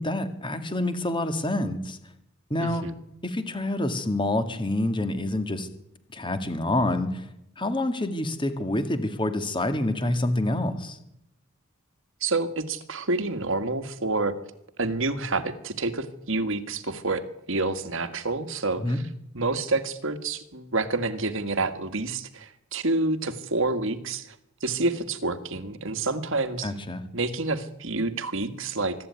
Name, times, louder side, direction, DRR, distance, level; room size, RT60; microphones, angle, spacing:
voice 1, 0.0-2.0 2.5-2.8 3.2-5.7 6.1-7.2 7.6-11.0 18.8-19.0 26.6-27.0, left 1 dB, 20° left, 9 dB, 2.1 m, -27 dB
voice 2, 2.6-2.9 12.2-14.3 14.8-17.2 17.5-19.0 19.3-24.3 24.6-26.7 27.1-28.9, right 3 dB, 60° right, 10 dB, 1.9 m, -28 dB
24.0 x 13.0 x 9.6 m, 0.80 s
head